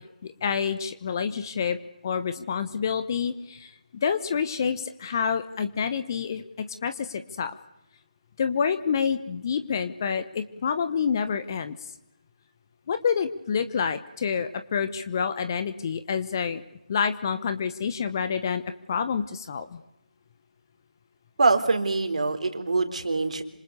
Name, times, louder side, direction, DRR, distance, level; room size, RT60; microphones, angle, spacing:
voice 1, 0.2-1.8 2.0-3.7 4.0-7.5 8.4-11.8 12.9-16.6 16.9-18.6 18.9-19.8, left 6 dB, 25° left, 10 dB, 1.1 m, -28 dB
voice 2, 21.4-23.4, right 3 dB, 50° right, 7 dB, 3.6 m, -24 dB
26.5 x 26.5 x 7.0 m, 0.88 s
figure-of-eight pair, 160°, 5 cm